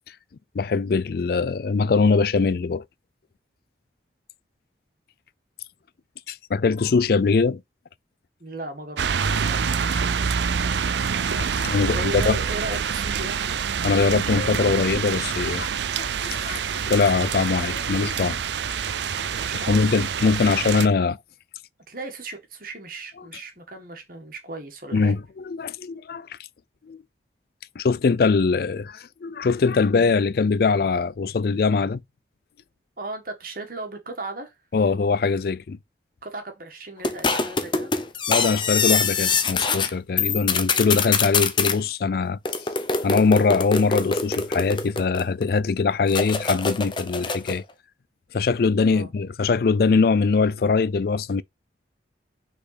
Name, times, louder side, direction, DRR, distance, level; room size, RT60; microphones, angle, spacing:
voice 1, 0.5-2.8 6.3-7.6 11.3-12.4 13.8-18.4 19.7-21.2 24.9-26.4 26.9-27.0 27.8-32.0 34.7-35.8 38.3-42.4 43.0-47.6 48.3-51.4, left 4 dB, 55° left, 0.4 m, -22 dB
voice 2, 8.4-9.6 11.7-13.4 19.3-19.8 21.9-25.1 33.0-34.5 36.2-37.9 48.9-49.1, right 2 dB, 50° right, 1.7 m, -36 dB
sound 1, 9.0-20.9, right 6 dB, 75° right, 0.5 m, -26 dB
sound 2, 37.0-39.9 40.2-41.8 42.4-45.4 46.1-47.6, left 5 dB, 25° left, 0.7 m, -24 dB
5.7 x 4.1 x 4.1 m
head